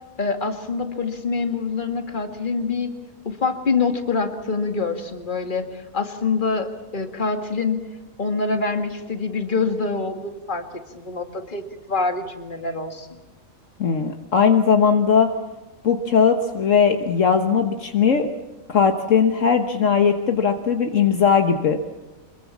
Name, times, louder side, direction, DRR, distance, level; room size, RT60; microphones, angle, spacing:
voice 1, 0.2-3.0 3.2-7.8 8.2-13.1, left 4 dB, 35° left, 6 dB, 2.1 m, -25 dB
voice 2, 13.8-15.3 15.8-18.3 18.7-21.8, left 6 dB, 65° left, 6 dB, 1.5 m, -18 dB
25.0 x 22.0 x 7.3 m, 1.2 s
omnidirectional pair, 1.5 m